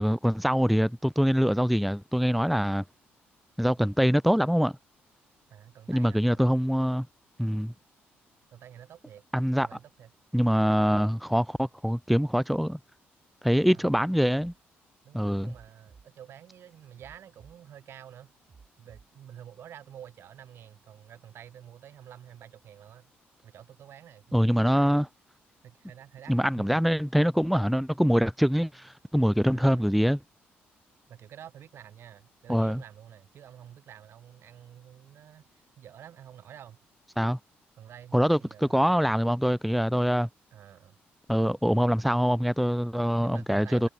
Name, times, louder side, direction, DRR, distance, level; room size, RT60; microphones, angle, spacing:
voice 1, 0.0-2.8 3.6-4.7 5.9-7.1 7.4-7.7 9.3-9.7 10.3-12.8 13.4-14.5 15.1-15.5 24.3-25.1 26.3-30.2 32.5-32.8 37.2-37.4 38.1-40.3 41.3-43.9, equal, ahead, 0.8 m, -24 dB
voice 2, 5.5-6.5 8.5-9.2 9.6-10.1 13.7-14.1 15.0-18.3 18.8-23.1 23.4-25.1 25.6-26.8 29.5-30.0 31.1-36.8 37.7-38.9 40.5-41.0 43.0-43.9, right 10 dB, 65° right, 5.2 m, -49 dB
sound 1, 14.4-14.6 15.5-16.1 17.0-17.6 18.5-19.1, right 5 dB, 40° right, 3.2 m, -54 dB
cardioid pair, 85°, 4 cm